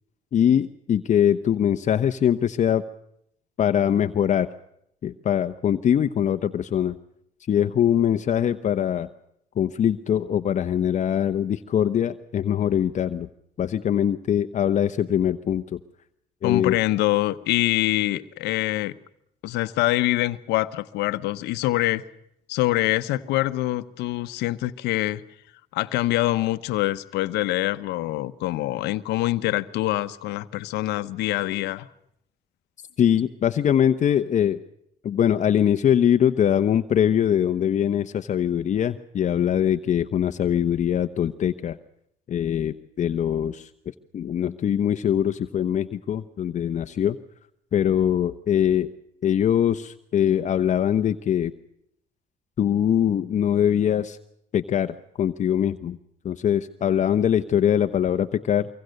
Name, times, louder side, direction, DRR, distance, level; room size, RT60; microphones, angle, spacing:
voice 1, 0.3-2.8 3.6-4.5 5.0-7.0 7.5-9.1 9.6-13.3 13.6-15.8 16.4-16.8 33.0-34.6 35.0-41.8 42.3-43.7 44.1-47.2 47.7-48.9 49.2-51.5 52.6-54.2 54.5-56.0 56.2-58.7, left 9 dB, 45° left, 8 dB, 0.9 m, -22 dB
voice 2, 16.4-19.0 19.4-22.0 22.5-25.2 25.7-31.9, left 17 dB, 85° left, 12 dB, 1.0 m, -25 dB
24.5 x 24.0 x 6.5 m, 0.75 s
cardioid pair, 110°, 17 cm